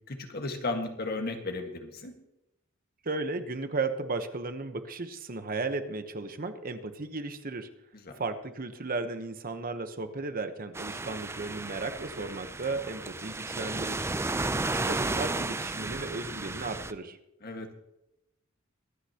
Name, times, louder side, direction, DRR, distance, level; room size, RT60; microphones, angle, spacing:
voice 1, 0.1-2.1 8.1-8.2 14.3-14.5 17.4-17.7, left 2 dB, 50° left, 4 dB, 1.7 m, -35 dB
voice 2, 3.0-7.7 8.2-14.1 14.5-17.2, right 3 dB, 45° right, 9 dB, 1.0 m, -35 dB
sound 1, 10.7-16.9, right 2 dB, 15° right, 0.5 m, -33 dB
24.0 x 9.7 x 2.9 m, 0.87 s
head